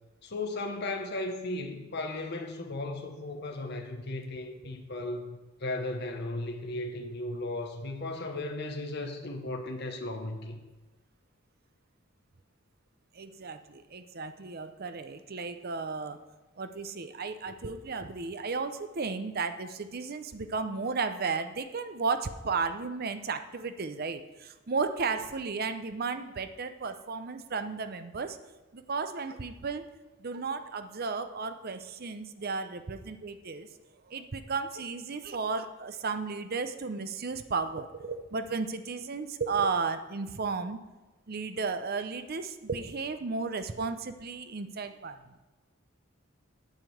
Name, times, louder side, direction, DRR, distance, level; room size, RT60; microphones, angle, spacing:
voice 1, 0.2-10.6, left 2 dB, 55° left, 3 dB, 1.0 m, -36 dB
voice 2, 13.1-16.2 16.6-28.4 28.7-29.8 30.2-33.7 34.1-40.8 41.3-45.2, right 4 dB, 50° right, 10 dB, 0.6 m, -34 dB
9.2 x 5.1 x 7.8 m, 1.2 s
head